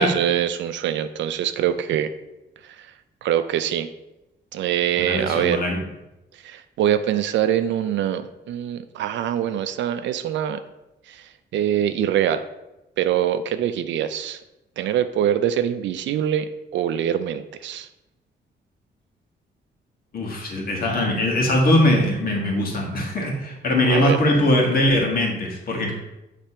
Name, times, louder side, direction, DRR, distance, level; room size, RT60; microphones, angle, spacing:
voice 1, 0.0-2.1 2.6-2.9 3.2-3.9 4.5-5.6 6.4-10.6 11.1-12.4 13.0-14.4 14.8-17.9 23.8-24.2, right 10 dB, 85° right, 10 dB, 0.4 m, -24 dB
voice 2, 5.0-5.8 20.1-25.9, left 1 dB, 55° left, -1 dB, 1.6 m, -21 dB
8.3 x 3.3 x 4.3 m, 0.95 s
cardioid pair, 150°, 19 cm